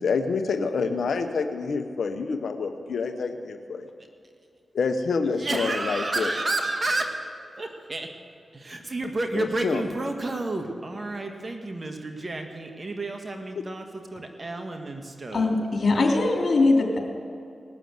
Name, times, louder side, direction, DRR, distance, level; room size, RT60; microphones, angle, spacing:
voice 1, 0.0-3.9 4.7-6.3 9.3-9.8, left 4 dB, 75° left, 8 dB, 0.9 m, -27 dB
voice 2, 5.4-7.2 7.6-8.1 8.5-15.5, right 2 dB, 40° right, 4 dB, 1.5 m, -31 dB
voice 3, 15.3-17.0, left 3 dB, 60° left, 1 dB, 2.8 m, -21 dB
18.5 x 6.9 x 7.9 m, 2.4 s
cardioid pair, 45°, 0 cm